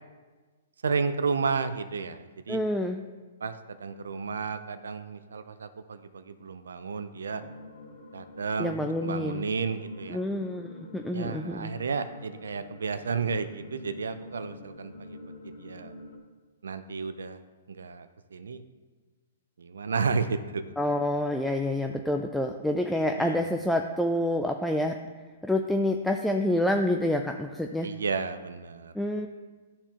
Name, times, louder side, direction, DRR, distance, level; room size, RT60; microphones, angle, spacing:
voice 1, 0.8-2.6 3.4-7.4 8.1-10.2 11.1-15.2 15.4-15.9 16.6-17.4 17.7-18.6 19.6-20.6 23.2-23.5 27.8-28.9, right 5 dB, 90° right, 11 dB, 0.5 m, -32 dB
voice 2, 2.5-3.1 8.6-9.5 10.1-11.7 20.8-25.0 25.4-27.9 28.9-29.3, left 1 dB, ahead, 3 dB, 0.3 m, -28 dB
sound 1, 7.3-16.2, left 2 dB, 70° left, 1.3 m, -46 dB
12.5 x 4.3 x 2.9 m, 1.3 s
hypercardioid pair, 145°, 0 cm